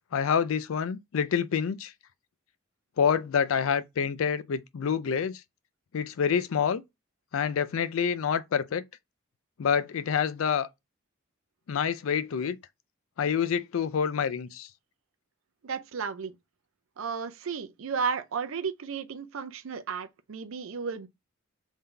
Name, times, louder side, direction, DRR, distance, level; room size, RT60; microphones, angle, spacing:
voice 1, 0.1-1.9 3.0-5.4 5.9-6.8 7.3-8.8 9.6-10.7 11.7-12.6 13.2-14.7, left 7 dB, 80° left, 0.4 m, -27 dB
voice 2, 15.6-16.4 17.0-21.1, right 6 dB, 75° right, 0.5 m, -33 dB
3.7 x 2.7 x 3.3 m
head